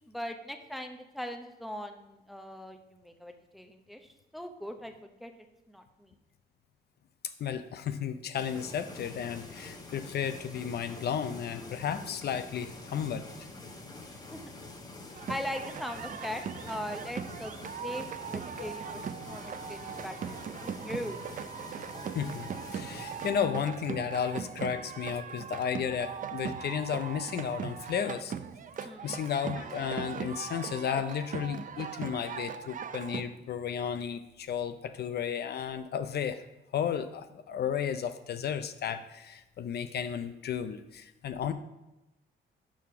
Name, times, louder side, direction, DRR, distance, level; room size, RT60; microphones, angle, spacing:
voice 1, 0.1-4.0 4.3-5.3 5.7-6.1 14.3-14.6 15.3-21.2 28.8-29.2, equal, ahead, 5 dB, 0.6 m, -40 dB
voice 2, 7.4-13.2 18.6-18.7 22.1-28.3 29.0-36.4 36.7-41.5, left 8 dB, 55° left, 9 dB, 0.5 m, -33 dB
sound 1, 8.4-23.3, left 2 dB, 20° left, 1.1 m, -46 dB
sound 2, 15.1-33.2, right 7 dB, 40° right, 0.4 m, -39 dB
5.3 x 4.8 x 5.7 m, 0.94 s
cardioid pair, 90°, 20 cm